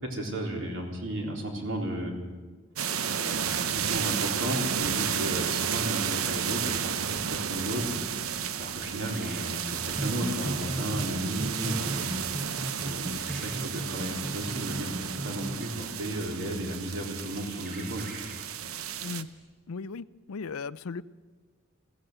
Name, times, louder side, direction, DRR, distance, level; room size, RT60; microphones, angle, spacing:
voice 1, 0.0-2.1 3.0-7.9 8.6-12.0 12.8-14.9 15.2-18.1, right 1 dB, 60° right, 1 dB, 3.9 m, -34 dB
sound 1, 2.8-19.2, right 8 dB, 80° right, 0.8 m, -32 dB
sound 2, 10.0-15.6, right 1 dB, 20° right, 1.0 m, -36 dB
sound 3, 16.7-19.4, right 3 dB, 40° right, 6.6 m, -53 dB
voice 2, 19.7-21.0, left 4 dB, 85° left, 17 dB, 0.5 m, -37 dB
21.0 x 15.5 x 8.0 m, 1.4 s
head